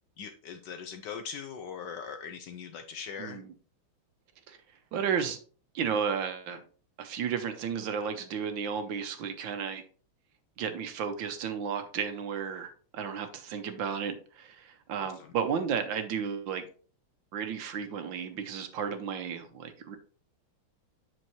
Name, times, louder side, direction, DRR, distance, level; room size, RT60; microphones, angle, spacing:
voice 1, 0.2-3.4 15.0-15.3, left 6 dB, 75° left, 7 dB, 1.0 m, -41 dB
voice 2, 3.2-3.5 4.5-4.6 4.9-5.4 5.7-6.6 7.0-9.8 10.6-16.7 17.3-20.0, right 7 dB, 70° right, 8 dB, 1.5 m, -33 dB
7.8 x 6.3 x 3.0 m, 0.42 s
omnidirectional pair, 2.3 m